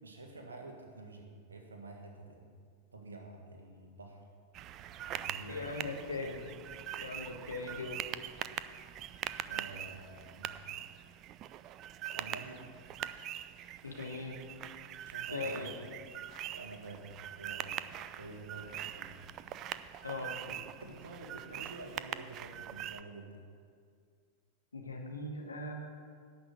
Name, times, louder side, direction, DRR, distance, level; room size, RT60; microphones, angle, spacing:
voice 1, 0.0-2.5 2.9-4.2 5.1-5.6 9.5-10.7 12.1-12.7 15.0-15.8 16.5-19.2 20.4-23.4, right 3 dB, 75° right, 3 dB, 1.7 m, -49 dB
sound 1, 4.5-23.0, right 11 dB, 35° right, 0.4 m, -43 dB
voice 2, 5.5-6.5 7.0-8.0 13.8-14.4 15.3-15.7 20.0-20.3 24.7-25.9, left 3 dB, 75° left, 2 dB, 1.6 m, -39 dB
11.5 x 6.1 x 8.0 m, 2.1 s
figure-of-eight pair, 90°, 0 cm